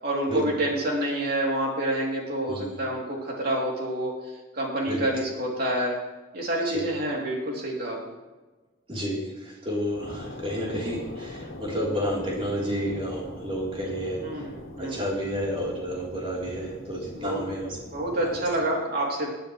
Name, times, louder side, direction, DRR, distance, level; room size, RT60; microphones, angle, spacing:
voice 1, 0.0-6.0 6.3-8.1 14.2-15.1 17.1-17.4 17.9-19.3, right 1 dB, 50° right, -2 dB, 2.9 m, -28 dB
voice 2, 8.9-14.5 14.8-17.8 18.2-18.4, equal, 30° right, -4 dB, 3.5 m, -31 dB
sound 1, 9.9-18.6, left 1 dB, 85° left, 1.8 m, -42 dB
20.0 x 9.8 x 3.2 m, 1.2 s
head